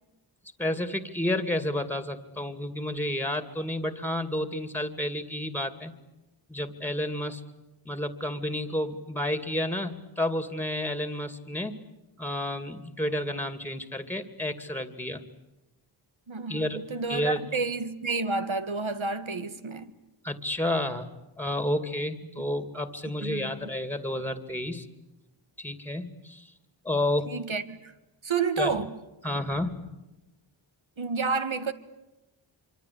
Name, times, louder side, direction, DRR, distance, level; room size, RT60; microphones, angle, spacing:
voice 1, 0.6-5.9 6.5-7.4 7.9-11.7 12.2-15.2 16.5-16.8 17.1-17.4 20.2-21.1 21.4-24.9 25.6-26.5 26.8-27.3 28.6-28.8 29.2-29.8, left 1 dB, 5° left, 2.5 m, -30 dB
voice 2, 16.3-19.9 23.2-23.7 27.3-27.9 28.2-29.0 31.0-31.7, right 4 dB, 75° right, 1.8 m, -30 dB
26.5 x 25.0 x 8.6 m
wide cardioid pair, 60°, 48 cm